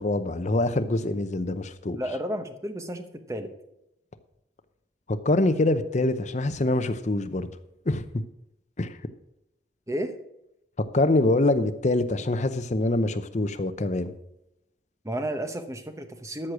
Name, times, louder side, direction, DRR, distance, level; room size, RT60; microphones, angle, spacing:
voice 1, 0.0-2.0 5.1-7.5 7.9-8.0 8.8-9.0 10.9-14.1, left 2 dB, 40° left, 0.7 m, -24 dB
voice 2, 1.9-3.5 9.9-10.2 15.0-16.5, right 1 dB, 15° right, 0.9 m, -32 dB
13.0 x 6.4 x 6.1 m
head